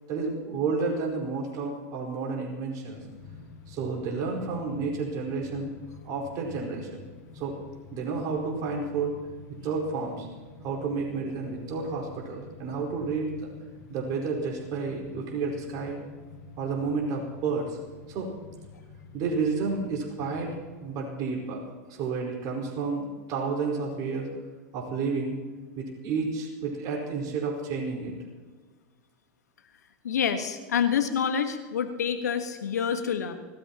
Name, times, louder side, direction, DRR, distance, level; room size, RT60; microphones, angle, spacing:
voice 1, 0.1-3.0 3.7-5.7 6.0-7.0 7.3-7.6 7.9-9.1 9.6-10.3 10.6-13.5 13.9-16.0 16.6-17.8 18.1-18.3 19.1-20.5 20.8-21.6 21.9-24.3 24.7-25.4 25.7-28.1, right 4 dB, 50° right, -2 dB, 4.9 m, -31 dB
sound 1, 2.9-20.8, left 5 dB, 55° left, 6.9 m, -48 dB
voice 2, 30.0-33.3, left 7 dB, 90° left, 7 dB, 1.5 m, -27 dB
25.0 x 17.5 x 3.0 m, 1.4 s
hypercardioid pair, 105°, 9 cm